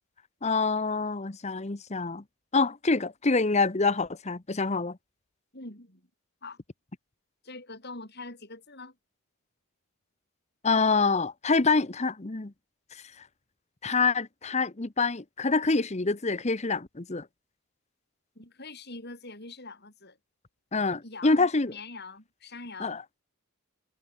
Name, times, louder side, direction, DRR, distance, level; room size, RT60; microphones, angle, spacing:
voice 1, 0.4-2.2 2.5-5.0 10.6-12.5 13.8-17.2 20.7-21.7 22.8-23.2, left 4 dB, 30° left, 0.9 m, -26 dB
voice 2, 5.5-6.1 6.4-6.6 7.4-9.0 18.3-20.2 21.0-23.0, left 3 dB, 50° left, 7.9 m, -43 dB
head